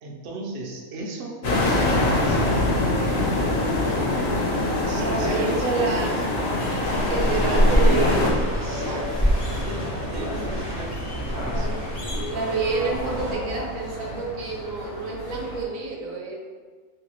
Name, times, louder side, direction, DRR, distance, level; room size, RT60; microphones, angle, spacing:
voice 1, 0.0-2.9 4.7-6.7 7.4-8.2 8.5-9.1 9.3-11.7, right 2 dB, 60° right, 0 dB, 0.6 m, -36 dB
sound 1, 1.4-8.3, left 2 dB, 60° left, 0.7 m, -23 dB
sound 2, 1.9-15.7, equal, 75° left, 1.3 m, -35 dB
voice 2, 5.0-6.2 7.1-8.3 12.3-16.4, right 4 dB, 80° right, -1 dB, 1.0 m, -28 dB
sound 3, 6.8-13.3, equal, 35° left, 0.4 m, -25 dB
3.1 x 2.6 x 2.9 m, 1.5 s
omnidirectional pair, 1.4 m